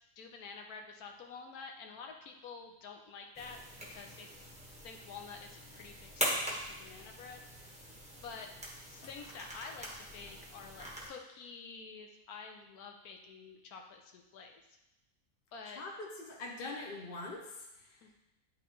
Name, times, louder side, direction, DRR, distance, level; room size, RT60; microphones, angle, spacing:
voice 1, 0.2-3.6 3.9-4.5 4.8-7.4 8.2-8.5 8.9-14.6 15.5-15.8 18.0-18.1, left 5 dB, 70° left, 3 dB, 1.2 m, -49 dB
sound 1, 3.3-11.1, equal, 5° right, 1.1 m, -42 dB
voice 2, 15.6-18.1, left 2 dB, 45° left, 0 dB, 0.8 m, -44 dB
11.0 x 3.6 x 3.0 m, 0.92 s
omnidirectional pair, 1.7 m